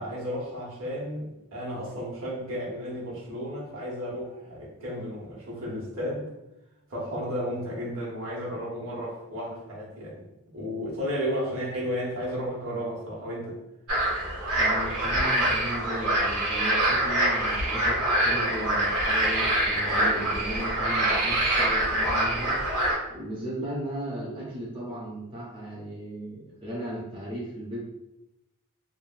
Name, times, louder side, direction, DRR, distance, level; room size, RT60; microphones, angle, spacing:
voice 1, 0.0-6.3 6.9-10.2 10.5-13.5, equal, 65° right, -5 dB, 1.1 m, -33 dB
sound 1, 13.9-22.9, right 1 dB, 85° right, 1.2 m, -25 dB
voice 2, 14.6-22.6 23.1-27.8, right 1 dB, 25° right, -6 dB, 0.4 m, -36 dB
3.1 x 2.2 x 2.4 m, 0.92 s
head